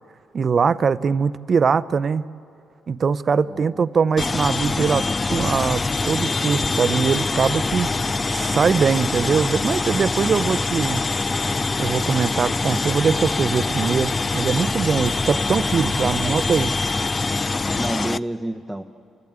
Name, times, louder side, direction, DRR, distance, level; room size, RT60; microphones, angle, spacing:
voice 1, 0.3-2.2 2.9-7.9 8.3-11.0 11.8-16.7, right 5 dB, 45° right, 16 dB, 0.6 m, -22 dB
voice 2, 3.5-3.9 16.0-16.6 17.8-18.8, right 1 dB, 5° right, 1 dB, 0.9 m, -30 dB
sound 1, 4.2-18.2, left 3 dB, 25° left, 0.4 m, -24 dB
29.5 x 12.0 x 8.8 m, 2.4 s
cardioid pair, 90°, 0 cm